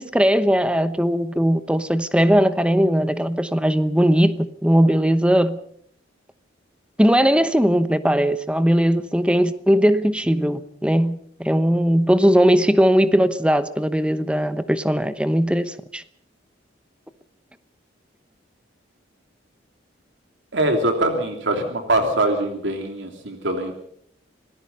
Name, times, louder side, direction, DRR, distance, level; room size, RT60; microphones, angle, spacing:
voice 1, 0.0-5.6 7.0-16.0, equal, 5° right, 0.9 m, -19 dB
voice 2, 20.5-23.7, right 1 dB, 75° right, 3.0 m, -22 dB
26.0 x 18.5 x 5.5 m
head